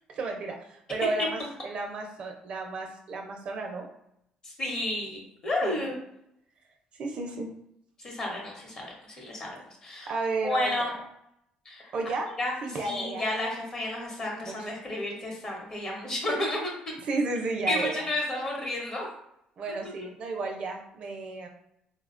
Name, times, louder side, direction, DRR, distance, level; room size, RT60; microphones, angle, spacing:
voice 1, 0.1-3.9 5.6-5.9 7.0-7.5 10.1-11.0 11.9-12.3 12.6-13.3 14.4-14.7 16.0-16.1 17.0-18.1 19.6-21.5, right 3 dB, 45° right, 2 dB, 0.4 m, -33 dB
voice 2, 4.4-6.0 8.0-10.1 10.4-10.9 11.6-11.9 12.4-12.5 12.8-16.7 17.7-19.1, left 1 dB, 30° left, -1 dB, 0.9 m, -31 dB
4.0 x 2.1 x 2.4 m, 0.77 s
cardioid pair, 150°, 2 cm